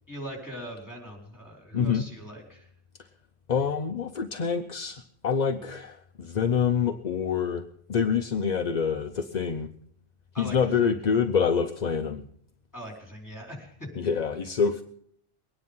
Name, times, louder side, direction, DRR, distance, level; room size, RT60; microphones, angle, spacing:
voice 1, 0.1-2.7 10.3-10.9 12.7-13.9, equal, 15° left, 0 dB, 4.5 m, -41 dB
voice 2, 1.7-2.1 3.5-7.6 7.9-9.7 10.4-12.2 14.0-14.8, left 6 dB, 45° left, 7 dB, 0.6 m, -26 dB
22.0 x 9.9 x 5.5 m, 0.66 s
omnidirectional pair, 1.4 m